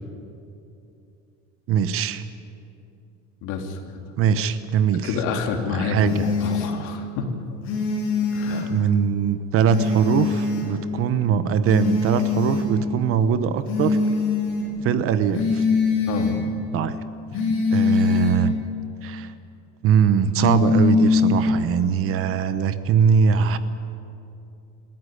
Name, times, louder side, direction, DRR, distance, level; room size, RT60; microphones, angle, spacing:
voice 1, 1.7-2.2 4.2-5.1 5.7-6.3 8.5-14.0 14.8-15.6 16.7-17.0 17.7-18.5 19.0-19.3 19.8-23.6, right 7 dB, 40° right, 12 dB, 1.0 m, -21 dB
voice 2, 3.4-3.8 5.0-7.6 8.3-8.7 16.1-16.4, left 5 dB, 65° left, 3 dB, 3.3 m, -28 dB
sound 1, 6.0-6.7 7.6-8.7 9.6-10.7 11.6-12.7 13.6-14.7 15.3-16.4 17.3-18.4 20.3-21.4, left 4 dB, 40° left, 7.6 m, -22 dB
26.5 x 15.0 x 10.0 m, 2.7 s
cardioid pair, 165°, 33 cm